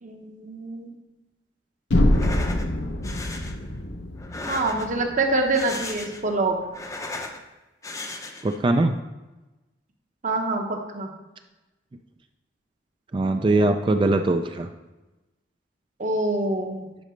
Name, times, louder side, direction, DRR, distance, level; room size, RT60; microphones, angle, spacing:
voice 1, 0.0-1.0 4.5-6.6 10.2-11.1 16.0-16.9, right 2 dB, 45° right, 3 dB, 1.0 m, -25 dB
sound 1, 1.9-5.9, left 1 dB, 80° left, 0.8 m, -25 dB
sound 2, 2.0-2.7 3.0-3.5 4.2-5.1 5.4-6.3 6.6-7.4 7.8-8.6, left 2 dB, 20° left, 0.6 m, -36 dB
voice 2, 8.4-8.9 13.1-14.7, right 2 dB, 30° right, 6 dB, 0.4 m, -21 dB
10.5 x 5.0 x 3.2 m, 1.1 s
head